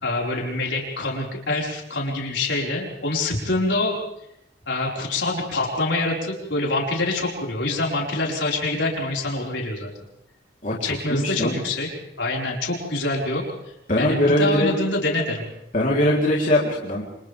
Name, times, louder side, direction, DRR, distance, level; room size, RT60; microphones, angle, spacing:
voice 1, 0.0-4.0 4.7-9.9 10.8-11.9 12.2-13.4 14.0-15.5, left 2 dB, 75° left, -2 dB, 5.1 m, -25 dB
voice 2, 10.6-11.6 13.9-14.7 15.7-17.0, left 1 dB, 45° left, -4 dB, 3.6 m, -21 dB
29.5 x 26.0 x 3.5 m, 0.82 s
head